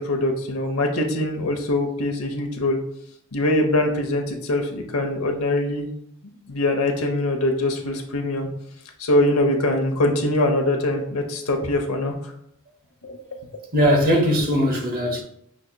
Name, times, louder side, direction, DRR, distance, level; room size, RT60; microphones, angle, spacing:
voice 1, 0.0-2.8 3.3-5.9 6.2-8.5 9.0-12.1 13.0-13.2, left 1 dB, 65° left, 0.8 m, -23 dB
voice 2, 13.7-15.2, equal, 40° right, 0.8 m, -19 dB
6.2 x 2.8 x 2.2 m
head